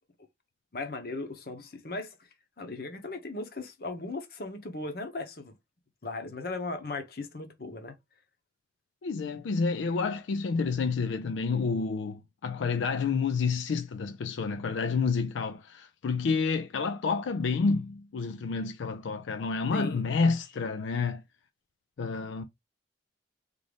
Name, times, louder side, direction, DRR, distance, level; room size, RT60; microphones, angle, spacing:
voice 1, 0.7-2.3 2.6-5.5 6.0-7.9 19.7-20.0, left 3 dB, 55° left, 0.9 m, -37 dB
voice 2, 9.0-21.2 22.0-22.4, left 4 dB, 85° left, 0.4 m, -29 dB
3.7 x 2.6 x 3.4 m
head